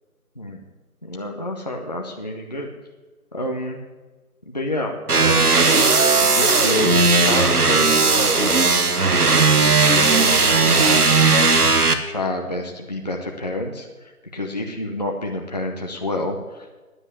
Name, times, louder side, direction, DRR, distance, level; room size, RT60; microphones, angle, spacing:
voice 1, 1.0-2.7 3.3-3.8 4.4-8.8 9.5-11.8 12.1-16.8, left 1 dB, 30° left, 1 dB, 0.8 m, -28 dB
sound 1, 5.1-11.9, right 4 dB, 85° right, 1.4 m, -16 dB
9.8 x 7.6 x 9.5 m, 1.2 s
figure-of-eight pair, 165°, 45 cm